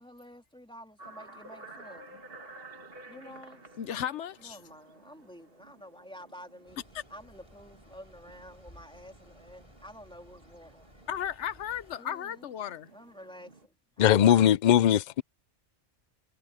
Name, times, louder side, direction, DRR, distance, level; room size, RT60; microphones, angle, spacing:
voice 1, 0.0-2.2 3.1-3.7 4.4-11.0 12.0-12.5 12.9-14.5, equal, 5° left, 3.1 m, -50 dB
sound 1, 1.0-13.7, right 2 dB, 55° right, 2.3 m, -53 dB
voice 2, 3.8-4.6 11.1-12.9, left 10 dB, 85° left, 1.0 m, -35 dB
sound 2, 6.7-12.0, equal, 25° left, 7.3 m, -57 dB
voice 3, 14.0-15.2, left 10 dB, 55° left, 0.5 m, -20 dB
omnidirectional pair, 1.2 m